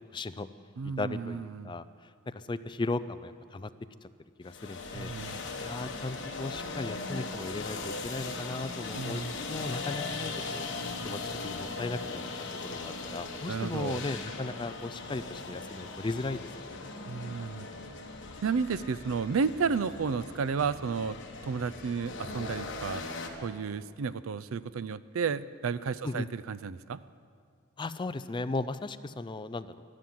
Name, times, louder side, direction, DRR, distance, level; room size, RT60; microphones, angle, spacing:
voice 1, 0.1-0.5 1.0-1.8 2.3-3.7 4.4-5.1 5.6-10.7 11.0-16.9 26.0-26.3 27.8-29.8, left 2 dB, 20° left, 12 dB, 0.4 m, -36 dB
voice 2, 0.8-1.8 4.9-5.4 9.0-9.3 13.5-14.0 17.1-17.7 18.4-21.2 21.4-23.0 23.4-27.0, right 5 dB, 70° right, 16 dB, 0.4 m, -32 dB
sound 1, 4.4-23.3, left 3 dB, 60° left, 1.3 m, -39 dB
13.0 x 11.5 x 7.7 m, 2.1 s
head